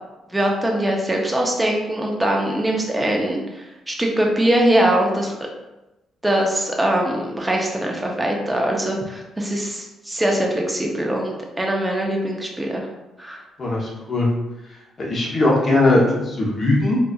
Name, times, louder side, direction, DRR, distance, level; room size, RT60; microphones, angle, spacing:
voice 1, 0.3-5.4 6.2-12.9 13.2-13.4, right 1 dB, 10° right, 0 dB, 0.7 m, -22 dB
voice 2, 13.6-14.3 15.0-17.0, left 2 dB, 40° left, -3 dB, 1.0 m, -19 dB
4.0 x 2.5 x 2.3 m, 1.0 s
cardioid pair, 90°, 0 cm